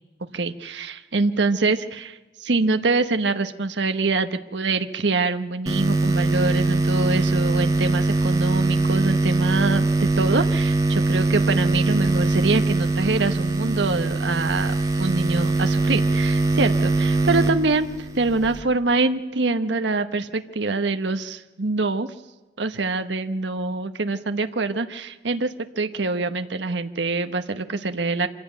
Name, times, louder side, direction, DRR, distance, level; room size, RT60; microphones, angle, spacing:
voice 1, 0.3-22.1 22.6-28.3, right 3 dB, 70° right, 9 dB, 1.0 m, -25 dB
sound 1, 5.7-18.6, right 2 dB, 20° right, 2.2 m, -22 dB
25.5 x 16.0 x 9.2 m, 1.2 s
head